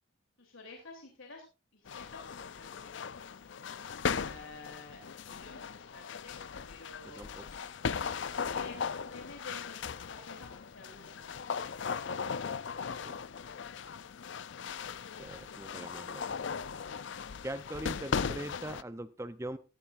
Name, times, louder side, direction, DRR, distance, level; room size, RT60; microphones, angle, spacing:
voice 1, 0.4-1.4 1.7-3.0 4.1-6.3 6.6-7.3 8.1-11.1 11.7-12.2 13.0-13.1, left 3 dB, 85° left, 1 dB, 3.1 m, -51 dB
sound 1, 1.9-18.8, left 6 dB, 65° left, 0.5 m, -38 dB
voice 2, 7.0-7.7 13.0-13.2 15.2-16.3 17.4-19.6, right 1 dB, 15° right, 12 dB, 0.5 m, -42 dB
16.0 x 13.0 x 2.5 m, 0.31 s
head